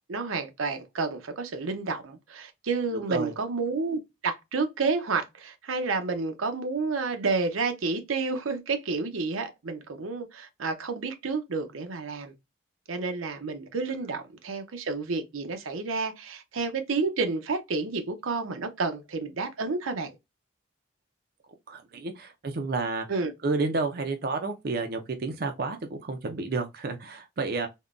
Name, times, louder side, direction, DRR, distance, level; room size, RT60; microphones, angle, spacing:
voice 1, 0.1-12.3 12.9-20.2 23.1-23.3, right 4 dB, 90° right, 0.6 m, -30 dB
voice 2, 21.7-23.1 23.4-27.7, right 3 dB, 50° right, 0.4 m, -30 dB
3.6 x 2.2 x 2.4 m
head